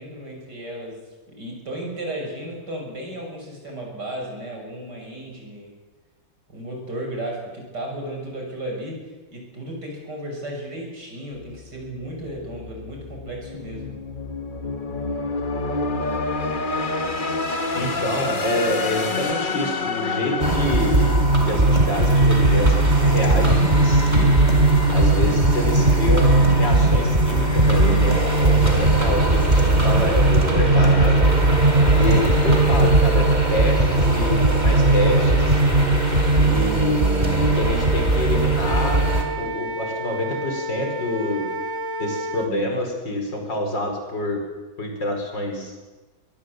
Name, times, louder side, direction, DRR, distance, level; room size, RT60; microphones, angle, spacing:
voice 1, 0.0-5.8 6.5-14.0, right 1 dB, 60° right, 1 dB, 7.4 m, -34 dB
sound 1, 11.4-22.4, left 3 dB, 30° left, 1.3 m, -29 dB
voice 2, 17.8-24.3 24.9-31.2 32.0-35.6 36.4-39.1 39.4-41.5 42.0-44.4 44.8-45.7, left 1 dB, 65° left, 3 dB, 5.5 m, -27 dB
sound 2, 20.4-39.2, right 2 dB, 20° right, 3.4 m, -18 dB
Wind instrument woodwind instrument, 38.6-42.5, equal, 40° right, 1.7 m, -30 dB
23.0 x 21.5 x 8.0 m, 1.2 s
omnidirectional pair, 2.1 m